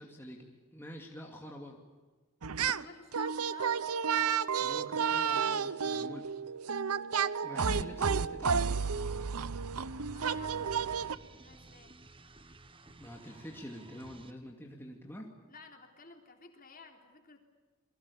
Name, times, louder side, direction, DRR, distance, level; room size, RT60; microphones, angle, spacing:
voice 1, 0.0-1.8 4.6-6.3 7.4-9.4 12.8-15.3, equal, 10° left, 0 dB, 2.4 m, -46 dB
sound 1, 2.4-2.9 3.1-11.2, right 6 dB, 85° right, 0.8 m, -31 dB
voice 2, 2.6-3.8 9.9-12.0 15.5-17.4, left 4 dB, 40° left, 4 dB, 3.6 m, -54 dB
sound 2, 9.0-14.3, right 2 dB, 25° right, 1.4 m, -55 dB
29.0 x 23.0 x 7.0 m, 1.4 s
head